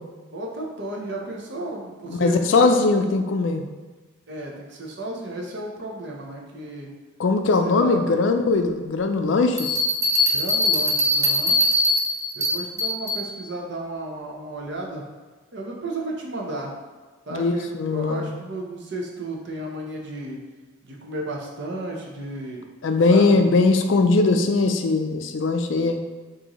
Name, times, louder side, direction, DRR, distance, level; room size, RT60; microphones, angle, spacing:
voice 1, 0.3-2.7 4.3-6.9 7.6-8.2 10.3-11.6 12.3-15.0 15.5-16.7 17.3-20.4 20.8-22.6 23.1-23.4, right 2 dB, 55° right, -1 dB, 0.8 m, -33 dB
voice 2, 2.1-3.6 7.2-9.8 17.3-18.3 22.8-26.0, left 3 dB, 60° left, 6 dB, 0.4 m, -20 dB
sound 1, 9.6-13.2, left 1 dB, 15° right, 0.7 m, -21 dB
6.2 x 2.7 x 3.0 m, 1.3 s
head